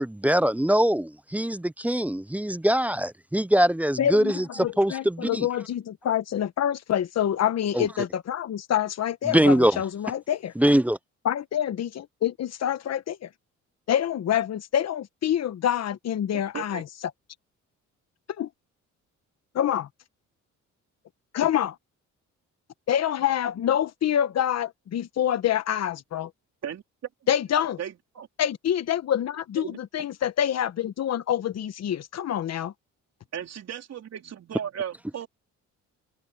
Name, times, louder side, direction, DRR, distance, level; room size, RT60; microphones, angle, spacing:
voice 1, 0.0-5.5 7.7-7.9 9.2-9.8 10.6-11.0, right 1 dB, 5° right, 0.5 m, -23 dB
voice 2, 4.0-4.3 4.6-10.5 11.2-13.3 13.9-16.8 18.4-18.5 19.5-19.9 21.3-21.7 22.9-26.3 27.3-27.8 28.4-32.7, left 10 dB, 60° left, 1.2 m, -26 dB
voice 3, 27.8-28.3 29.6-30.1 33.3-35.3, right 9 dB, 60° right, 3.6 m, -36 dB
cardioid pair, 90°, 30 cm